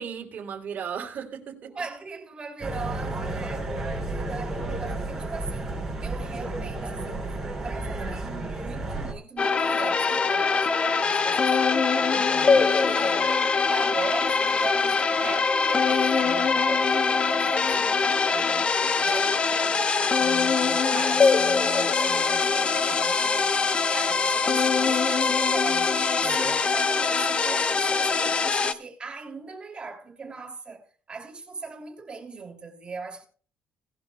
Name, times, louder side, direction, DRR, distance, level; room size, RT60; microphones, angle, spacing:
voice 1, 0.0-1.7 11.9-12.7 20.9-21.0 26.2-26.5, right 7 dB, 50° right, 3.2 m, -37 dB
voice 2, 1.7-11.7 12.4-13.3 13.7-18.7 19.0-23.5 23.9-33.3, right 4 dB, 30° right, 2.8 m, -39 dB
sound 1, 2.6-9.1, right 2 dB, 10° right, 7.1 m, -32 dB
sound 2, 9.4-28.7, left 5 dB, 30° left, 1.0 m, -23 dB
18.5 x 11.5 x 2.3 m
cardioid pair, 125°, 4 cm